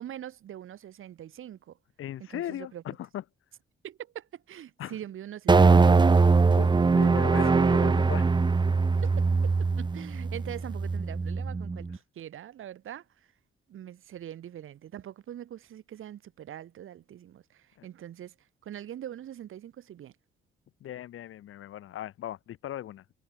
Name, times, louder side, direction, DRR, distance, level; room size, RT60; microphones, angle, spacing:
voice 1, 0.0-1.8 2.2-2.8 3.8-6.4 6.8-8.1 9.0-13.3 13.7-20.2, right 11 dB, 75° right, 3.6 m, -43 dB
voice 2, 2.0-3.2 4.8-5.0 6.5-8.3 17.8-17.9 20.8-23.0, left 12 dB, 90° left, 3.8 m, -38 dB
sound 1, 5.5-12.0, right 4 dB, 20° right, 0.9 m, -22 dB
cardioid pair, 130°, 21 cm